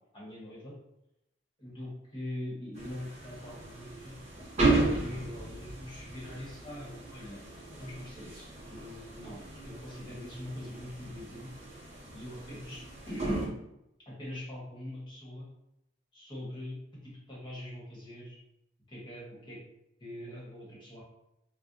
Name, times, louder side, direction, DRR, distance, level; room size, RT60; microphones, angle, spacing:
voice 1, 0.1-0.7 1.6-4.1 4.6-7.4 7.7-11.5 12.1-13.5 14.1-15.5 16.1-16.8 17.0-18.4 18.9-19.6 20.0-21.0, left 1 dB, 25° left, -6 dB, 1.2 m, -43 dB
sound 1, 2.7-13.5, right 3 dB, 35° right, 0.9 m, -35 dB
4.2 x 2.1 x 2.5 m, 0.83 s
head